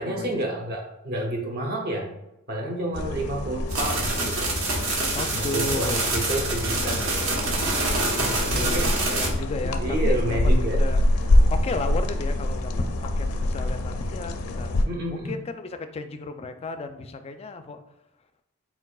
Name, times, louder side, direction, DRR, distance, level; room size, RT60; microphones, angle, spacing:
voice 1, 0.0-2.1 2.5-4.5 5.3-7.5 8.2-9.2 9.6-10.8 14.8-15.4, right 1 dB, 45° right, 1 dB, 0.8 m, -30 dB
sound 1, 2.9-14.8, left 1 dB, 85° left, 0.5 m, -25 dB
sound 2, 3.7-9.3, right 2 dB, 65° right, 1.1 m, -26 dB
voice 2, 5.1-6.0 6.7-7.1 8.5-10.4 10.7-11.0 11.5-12.7 13.0-14.7 15.1-17.8, left 3 dB, 25° left, 8 dB, 0.3 m, -34 dB
4.6 x 4.1 x 2.3 m, 0.89 s
head